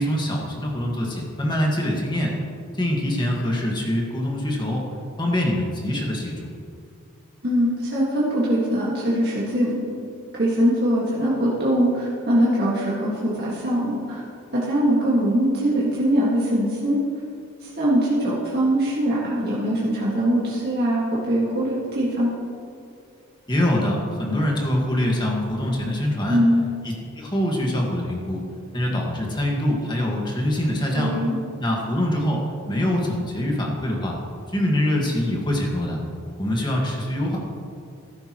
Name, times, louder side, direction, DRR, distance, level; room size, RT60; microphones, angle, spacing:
voice 1, 0.0-2.3 2.7-4.9 5.2-6.5 23.5-26.4 26.8-28.4 28.7-31.1 31.6-34.2 34.5-36.0 36.4-37.4, left 1 dB, 20° left, -1 dB, 1.6 m, -24 dB
voice 2, 7.4-9.8 10.3-14.2 14.5-17.0 17.6-22.3 26.3-26.7 30.9-31.4, equal, 50° right, -7 dB, 1.8 m, -22 dB
13.5 x 11.0 x 3.0 m, 2.3 s
head